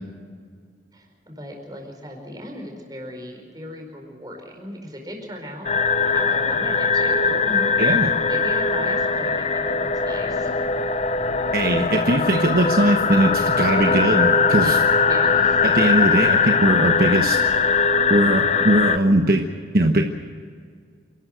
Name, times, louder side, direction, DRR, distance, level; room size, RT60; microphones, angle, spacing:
voice 1, 0.9-5.7 6.0-7.8 8.2-10.7 15.1-15.7, equal, 20° right, 1 dB, 4.8 m, -37 dB
sound 1, 5.6-19.0, left 5 dB, 35° left, 0.7 m, -20 dB
voice 2, 7.8-8.1 11.5-14.8 15.6-17.4 18.1-19.4 19.7-20.0, right 1 dB, 55° right, 3 dB, 1.2 m, -20 dB
28.0 x 13.0 x 8.1 m, 2.1 s
head